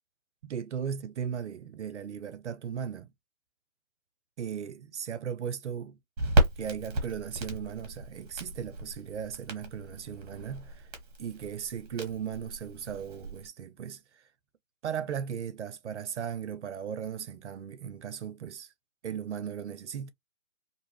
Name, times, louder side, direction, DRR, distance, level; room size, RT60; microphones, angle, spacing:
voice 1, 0.4-3.1 4.4-6.0 6.6-10.9 11.2-14.0 14.8-18.7 19.0-20.1, right 8 dB, 55° right, 0.5 m, -37 dB
Crackle, 6.2-13.5, right 2 dB, 30° right, 0.9 m, -33 dB
2.5 x 2.4 x 3.1 m
figure-of-eight pair, 135°, 42 cm